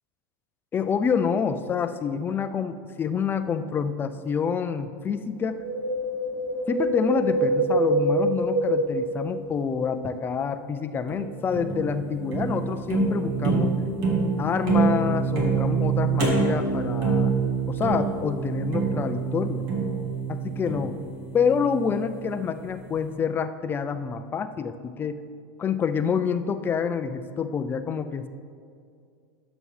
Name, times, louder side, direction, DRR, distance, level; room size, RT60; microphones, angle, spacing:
voice 1, 0.7-5.6 6.7-13.7 14.4-17.3 17.7-19.6 20.3-21.0 21.3-25.3 25.6-28.3, left 6 dB, 15° left, 10 dB, 0.3 m, -27 dB
Wind, 5.4-9.8 10.0-10.1, right 2 dB, 20° right, 1.7 m, -26 dB
sound 1, 11.1-22.3, right 5 dB, 55° right, 1.9 m, -26 dB
10.5 x 7.1 x 3.2 m, 2.3 s
supercardioid pair, 140°, 12 cm